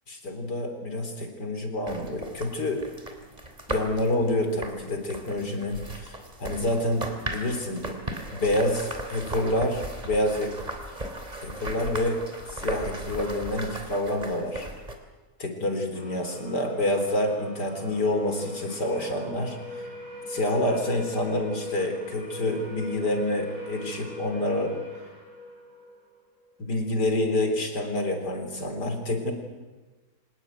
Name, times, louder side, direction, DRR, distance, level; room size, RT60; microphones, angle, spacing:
voice 1, 0.1-2.9 3.7-7.9 8.3-10.6 11.4-12.2 12.5-14.7 15.4-19.9 20.3-24.8 26.6-29.3, left 1 dB, 70° left, 5 dB, 4.3 m, -28 dB
sound 1, 1.9-15.0, right 1 dB, 20° right, 3.4 m, -37 dB
sound 2, 15.9-26.5, left 1 dB, 75° right, 8.4 m, -41 dB
26.0 x 19.0 x 9.4 m, 1.3 s
omnidirectional pair, 1.9 m